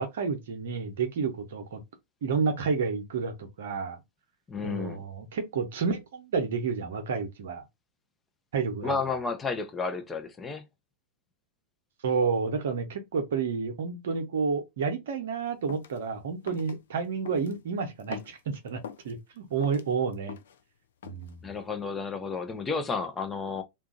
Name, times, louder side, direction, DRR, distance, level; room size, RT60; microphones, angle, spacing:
voice 1, 0.0-1.8 2.2-4.0 4.6-7.6 8.5-9.0 12.0-20.4 21.0-21.4, right 5 dB, 60° right, 0.8 m, -30 dB
voice 2, 4.5-5.0 8.8-10.6 21.4-23.6, left 4 dB, 15° left, 0.6 m, -32 dB
sound 1, 15.7-16.0 16.5-16.7 17.3-17.6 18.0-19.1 19.5-20.6 21.0-21.3, left 8 dB, 60° left, 0.4 m, -43 dB
2.7 x 2.4 x 3.7 m
figure-of-eight pair, 90°, 0 cm